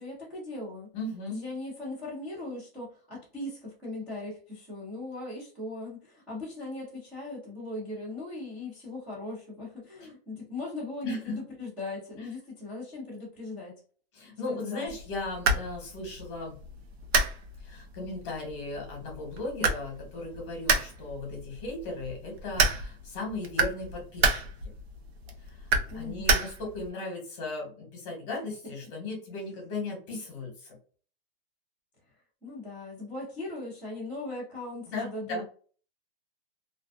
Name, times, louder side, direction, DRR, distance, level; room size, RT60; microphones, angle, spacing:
voice 1, 0.0-0.9 1.3-13.8 14.5-14.9 25.9-26.5 28.6-28.7 32.4-35.5, left 2 dB, 5° right, -12 dB, 0.5 m, -39 dB
voice 2, 0.9-1.4 10.0-10.4 11.0-11.4 12.2-12.3 14.1-16.5 17.6-24.5 25.5-25.7 25.9-30.7 34.9-35.5, left 2 dB, 30° left, 0 dB, 1.1 m, -37 dB
sound 1, 14.9-26.9, right 4 dB, 80° right, 0.7 m, -31 dB
2.4 x 2.2 x 2.3 m, 0.41 s
supercardioid pair, 175°, 31 cm